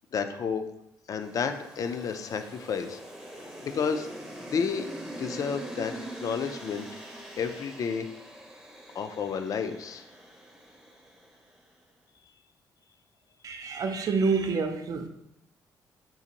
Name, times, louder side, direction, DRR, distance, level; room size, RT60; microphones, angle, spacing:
voice 1, 0.1-0.6 1.1-3.0 3.6-4.1 4.5-5.9 6.2-6.9 7.4-8.1 8.9-10.0, left 6 dB, 50° left, 0.4 m, -31 dB
sound 1, 1.2-11.5, right 1 dB, 10° right, 0.6 m, -43 dB
voice 2, 13.4-15.1, right 4 dB, 50° right, 0.4 m, -27 dB
3.9 x 2.5 x 2.8 m
cardioid pair, 85°, 7 cm